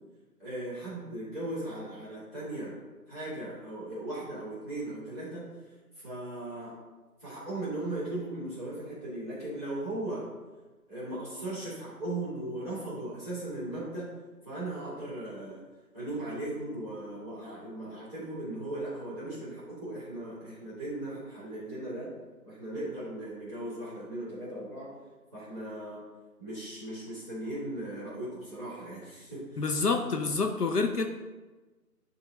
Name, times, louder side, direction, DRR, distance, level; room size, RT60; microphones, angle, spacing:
voice 1, 0.4-2.8 3.1-5.5 6.0-6.7 7.2-10.2 10.9-14.1 14.4-15.6 15.9-22.1 22.4-24.9 25.3-26.0 26.4-29.7, right 1 dB, 10° left, -10 dB, 1.8 m, -37 dB
voice 2, 29.6-31.1, left 4 dB, 75° left, 4 dB, 0.7 m, -27 dB
8.4 x 2.9 x 3.9 m, 1.2 s
figure-of-eight pair, 150°, 47 cm